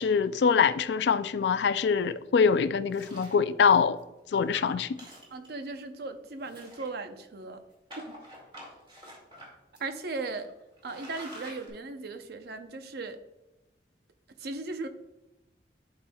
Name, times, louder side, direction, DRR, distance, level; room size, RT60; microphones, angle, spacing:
voice 1, 0.0-4.0 4.3-4.9, left 6 dB, 70° left, 0.3 m, -24 dB
sound 1, 2.9-3.4 4.0-4.1 4.4-4.5 4.9-5.7 6.4-7.2 7.9-9.5 9.7-9.8 10.4-10.5 10.8-11.7, equal, 30° right, 2.2 m, -47 dB
voice 2, 5.3-7.6 7.9-8.2 9.8-10.5 10.8-13.2 14.4-14.9, right 3 dB, 60° right, 0.6 m, -37 dB
11.5 x 4.4 x 2.3 m
head